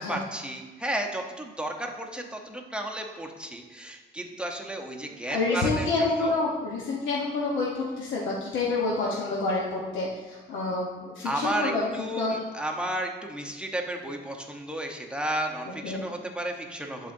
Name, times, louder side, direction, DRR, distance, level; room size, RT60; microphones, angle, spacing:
voice 1, 0.0-5.9 6.2-6.3 11.2-17.1, right 1 dB, 5° right, 1 dB, 0.8 m, -33 dB
voice 2, 5.3-11.9 12.2-12.4 15.8-16.0, left 3 dB, 75° left, -4 dB, 1.0 m, -28 dB
11.0 x 3.8 x 2.6 m, 1.2 s
cardioid pair, 90°, 20 cm